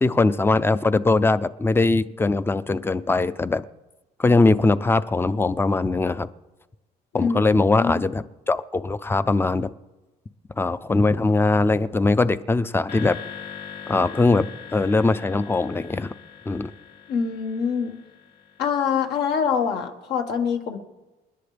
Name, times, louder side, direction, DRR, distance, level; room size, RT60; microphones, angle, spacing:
voice 1, 0.0-3.6 4.2-6.3 7.1-9.7 10.6-13.2 13.9-16.1 16.5-16.7, left 3 dB, 15° left, 14 dB, 0.5 m, -21 dB
voice 2, 7.1-8.0 17.1-17.9 18.6-20.8, left 6 dB, 75° left, 4 dB, 1.8 m, -25 dB
sound 1, 12.9-19.3, left 7 dB, 60° left, 4.4 m, -41 dB
28.5 x 10.5 x 3.4 m, 1.1 s
cardioid pair, 110°, 17 cm